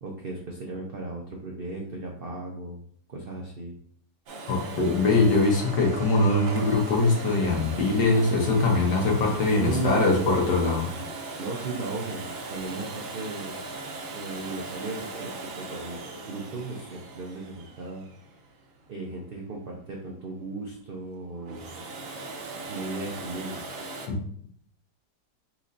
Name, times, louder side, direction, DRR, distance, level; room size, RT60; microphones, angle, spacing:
voice 1, 0.0-2.8 3.1-3.8 9.5-10.3 11.4-13.6 14.1-18.1 18.9-21.8 22.7-23.6, right 3 dB, 85° right, -1 dB, 0.4 m, -35 dB
Domestic sounds home sounds, 4.3-19.0 21.3-24.1, right 3 dB, 60° right, 1.0 m, -38 dB
voice 2, 4.5-10.9, left 3 dB, 85° left, 0 dB, 1.7 m, -22 dB
4.4 x 4.0 x 2.5 m, 0.63 s
omnidirectional pair, 1.8 m